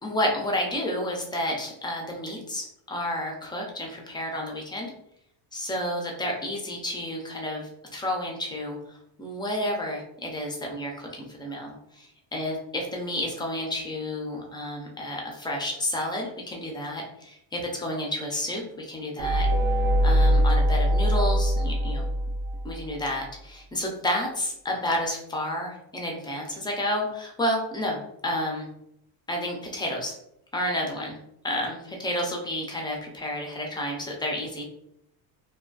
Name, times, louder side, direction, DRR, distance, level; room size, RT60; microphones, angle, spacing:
voice 1, 0.0-4.9 5.5-19.5 20.0-22.1 22.6-28.7 29.3-30.1 30.5-31.2 31.4-34.7, left 1 dB, 10° left, -1 dB, 0.3 m, -31 dB
sound 1, 19.2-22.9, equal, 40° right, 0.7 m, -22 dB
2.4 x 2.2 x 2.2 m, 0.77 s
supercardioid pair, 100°, 49 cm